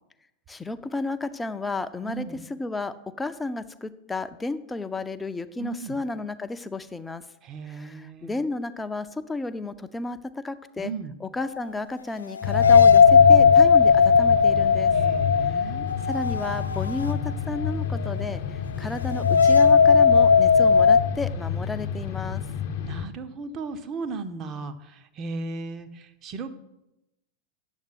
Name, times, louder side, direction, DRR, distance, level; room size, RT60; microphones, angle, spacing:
voice 1, 0.5-7.2 7.7-10.9 11.2-14.9 15.5-15.7 16.1-17.2 17.5-22.4, left 3 dB, 10° left, 11 dB, 0.5 m, -32 dB
voice 2, 2.0-2.4 5.6-6.0 7.4-8.4 10.8-11.1 14.9-15.9 22.8-26.5, right 4 dB, 30° right, 9 dB, 0.7 m, -36 dB
sound 1, 11.4-11.5 12.4-17.3 17.6-17.7 19.1-21.0, left 6 dB, 75° left, 0.3 m, -17 dB
sound 2, 12.4-23.1, left 7 dB, 50° left, 0.7 m, -31 dB
9.0 x 7.2 x 5.9 m, 0.92 s
figure-of-eight pair, 90°, 0 cm